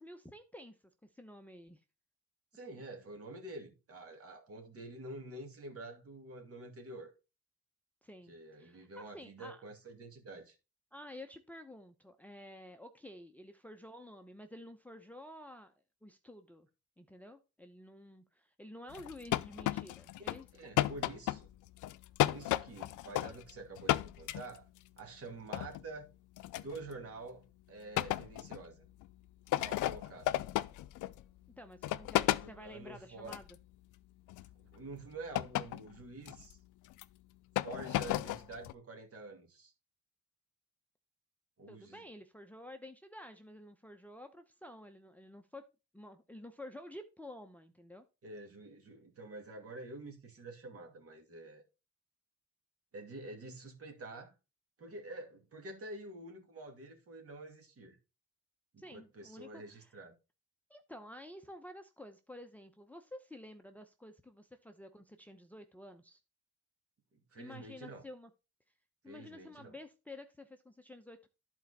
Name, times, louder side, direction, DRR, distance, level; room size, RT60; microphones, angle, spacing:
voice 1, 0.0-1.8 8.0-9.6 10.9-15.7 16.0-16.7 17.0-20.5 31.6-33.5 41.7-45.6 45.9-48.0 58.8-59.9 60.7-66.2 67.4-68.3 69.0-71.3, left 1 dB, 5° left, 0.7 m, -51 dB
voice 2, 2.5-7.1 8.3-10.6 20.5-21.5 22.2-24.7 25.0-26.1 26.5-28.9 29.5-30.4 32.4-33.4 34.6-36.6 37.6-39.7 41.6-42.0 48.2-51.6 52.9-54.3 54.8-58.0 58.7-60.2 67.3-68.1 69.1-69.7, right 2 dB, 50° right, 2.5 m, -48 dB
sound 1, 18.9-20.4 20.8-23.5 23.8-24.8 25.5-25.8 26.4-26.8 28.0-28.6 29.0-29.1 29.5-31.2 31.8-32.5 33.3-33.5 34.3-34.5 35.3-35.9 36.2-36.5 36.9-37.0 37.6-38.7, left 15 dB, 80° left, 0.5 m, -33 dB
11.0 x 4.5 x 4.1 m
cardioid pair, 90°, 30 cm